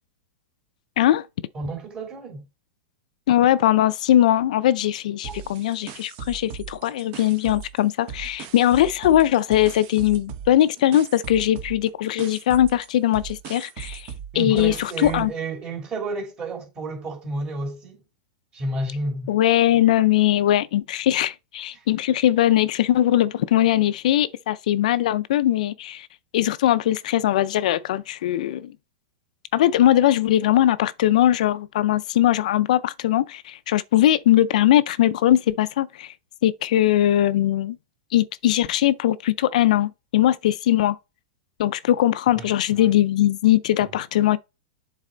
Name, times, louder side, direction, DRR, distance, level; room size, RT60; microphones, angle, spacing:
voice 1, 1.5-2.4 5.2-5.4 14.3-18.0 18.5-19.3 21.7-21.9 42.3-42.9 43.8-44.0, right 2 dB, 25° right, 2.9 m, -31 dB
voice 2, 3.3-15.3 19.3-26.1 26.3-28.7 29.5-36.1 36.4-37.8 38.1-41.0 41.6-44.4, left 12 dB, 70° left, 0.5 m, -20 dB
sound 1, 5.2-7.8 8.1-15.3, right 8 dB, 45° right, 1.1 m, -38 dB
7.4 x 4.1 x 3.9 m
hypercardioid pair, 135°, 4 cm